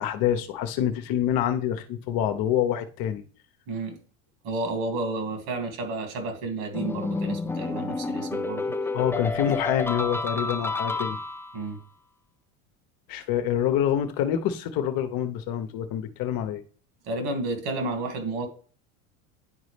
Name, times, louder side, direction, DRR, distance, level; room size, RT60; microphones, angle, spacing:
voice 1, 0.0-3.2 8.9-11.2 13.1-16.6, left 10 dB, 55° left, 1.0 m, -26 dB
voice 2, 3.7-4.0 4.4-8.7 11.5-11.8 17.0-18.5, right 2 dB, 65° right, 2.5 m, -31 dB
sound 1, 6.7-11.7, left 3 dB, 5° left, 0.5 m, -30 dB
10.5 x 4.0 x 3.3 m
hypercardioid pair, 85°, 41 cm